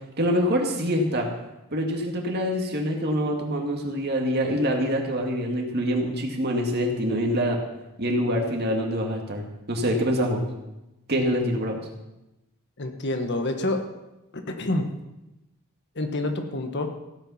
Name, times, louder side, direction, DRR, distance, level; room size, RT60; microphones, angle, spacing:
voice 1, 0.2-1.3 1.7-7.6 8.0-10.5 11.1-11.8, equal, 50° right, 1 dB, 2.2 m, -25 dB
voice 2, 12.8-13.8 14.3-14.8 15.9-17.0, left 2 dB, 50° left, 6 dB, 1.4 m, -27 dB
16.0 x 9.0 x 5.8 m, 0.97 s
head